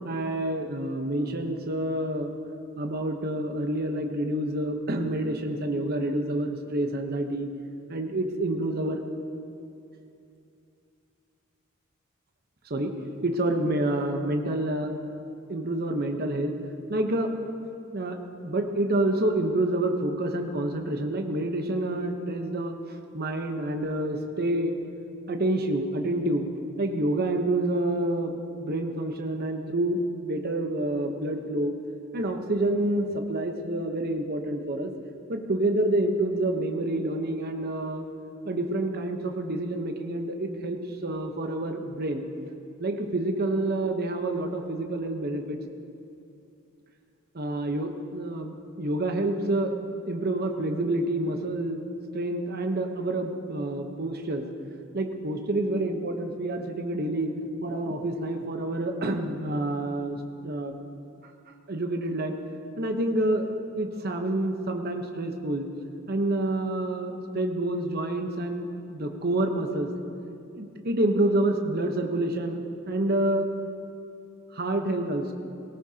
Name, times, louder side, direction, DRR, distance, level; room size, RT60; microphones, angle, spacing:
voice 1, 0.0-2.3 2.8-7.5 7.9-9.0 12.7-12.9 13.2-14.9 15.5-16.5 16.9-17.3 17.9-18.2 18.4-22.8 23.1-24.8 25.3-26.5 26.8-31.7 32.1-34.9 35.3-38.0 38.4-42.2 42.8-45.6 47.3-49.7 50.1-51.8 52.1-54.4 54.9-57.3 57.6-60.7 61.7-62.3 62.8-63.5 63.8-65.7 66.1-69.9 70.5-73.5 74.5-75.3, right 1 dB, 50° right, 4 dB, 1.0 m, -28 dB
18.5 x 17.0 x 2.9 m, 2.6 s
head